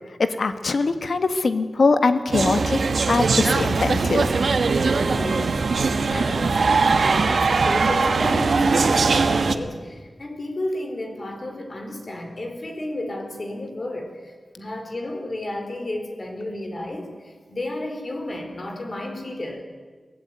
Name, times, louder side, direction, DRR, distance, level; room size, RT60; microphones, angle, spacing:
voice 1, 0.2-2.8 3.1-4.3, left 3 dB, 70° left, 9 dB, 1.6 m, -22 dB
sound 1, 2.3-9.5, right 4 dB, 80° right, 1.3 m, -20 dB
voice 2, 4.9-19.6, left 1 dB, 45° left, 4 dB, 4.5 m, -32 dB
23.0 x 16.5 x 9.5 m, 1.5 s
wide cardioid pair, 105°, 0 cm